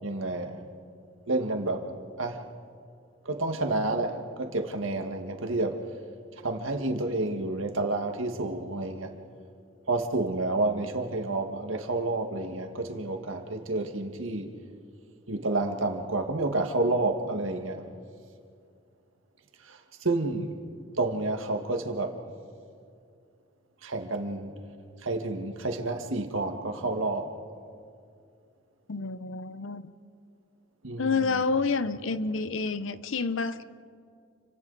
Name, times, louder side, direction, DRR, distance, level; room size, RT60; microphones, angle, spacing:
voice 1, 0.0-0.6 1.3-1.9 2.2-2.4 3.2-5.8 6.4-9.2 9.9-14.5 15.3-17.8 19.7-20.5 21.0-22.2 23.8-24.5 25.0-27.3 30.8-31.4, right 2 dB, 75° right, 5 dB, 1.8 m, -29 dB
voice 2, 28.9-29.8 31.0-33.6, left 4 dB, 75° left, 13 dB, 0.8 m, -28 dB
29.5 x 25.0 x 4.1 m, 2.3 s
head